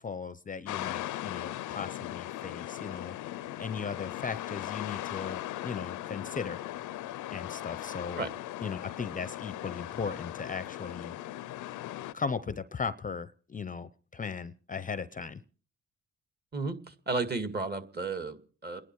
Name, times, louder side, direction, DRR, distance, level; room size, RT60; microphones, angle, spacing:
voice 1, 0.0-3.2 3.6-6.6 7.3-8.2 8.6-11.2 12.1-15.4, left 5 dB, 25° left, 15 dB, 0.7 m, -37 dB
sound 1, 0.7-12.1, left 15 dB, 85° left, 0.7 m, -38 dB
voice 2, 16.5-18.8, right 3 dB, 35° right, 10 dB, 2.1 m, -33 dB
29.0 x 10.5 x 4.7 m, 0.43 s
cardioid pair, 90°, 30 cm